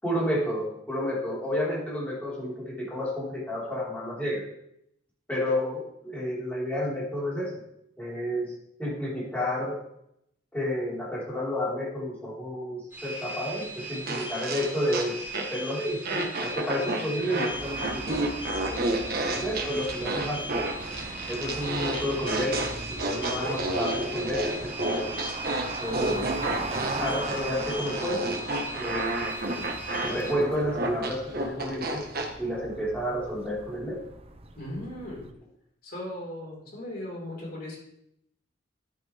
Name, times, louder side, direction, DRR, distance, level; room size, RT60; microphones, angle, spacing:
voice 1, 0.0-4.4 5.3-7.6 8.0-9.8 10.5-18.9 19.3-20.4 21.3-22.6 22.9-25.2 25.8-26.4 27.0-28.2 28.8-29.2 30.0-32.0 32.4-34.0, equal, 10° left, -7 dB, 4.7 m, -31 dB
sound 1, 12.9-30.3, right 1 dB, 10° right, 4.7 m, -39 dB
sound 2, 14.1-15.7 16.0-32.3, right 2 dB, 55° right, 1.6 m, -31 dB
sound 3, 17.5-35.3, right 2 dB, 30° right, 0.8 m, -39 dB
voice 2, 34.5-35.2 35.8-37.8, left 1 dB, 55° left, -4 dB, 4.9 m, -37 dB
12.0 x 9.4 x 3.6 m, 0.76 s
head